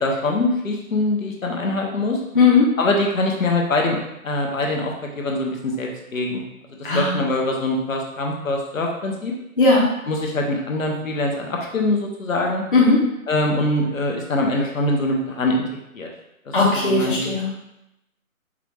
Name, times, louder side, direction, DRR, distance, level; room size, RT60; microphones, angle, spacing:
voice 1, 0.0-2.2 2.8-4.0 4.2-6.4 6.8-9.3 10.1-12.6 13.3-15.6 15.9-16.1 16.5-16.6 16.8-17.3, left 2 dB, 65° left, 0 dB, 0.9 m, -23 dB
voice 2, 2.3-2.7 6.8-7.2 9.6-9.9 12.7-13.0 16.5-17.6, left 3 dB, 35° left, -6 dB, 0.6 m, -17 dB
4.9 x 2.3 x 3.3 m, 0.87 s
hypercardioid pair, 170°, 43 cm